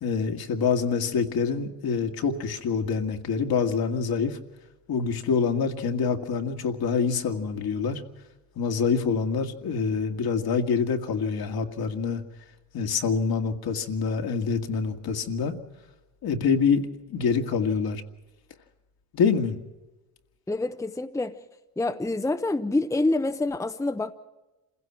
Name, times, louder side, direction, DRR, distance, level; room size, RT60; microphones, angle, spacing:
voice 1, 0.0-4.4 4.9-8.0 8.6-12.2 12.7-15.5 16.2-18.0 19.1-19.6, left 5 dB, 55° left, 5 dB, 2.0 m, -26 dB
voice 2, 20.5-21.4 21.8-24.1, left 2 dB, 5° left, 7 dB, 0.9 m, -27 dB
27.0 x 16.5 x 6.1 m, 1.1 s
supercardioid pair, 75°, 43 cm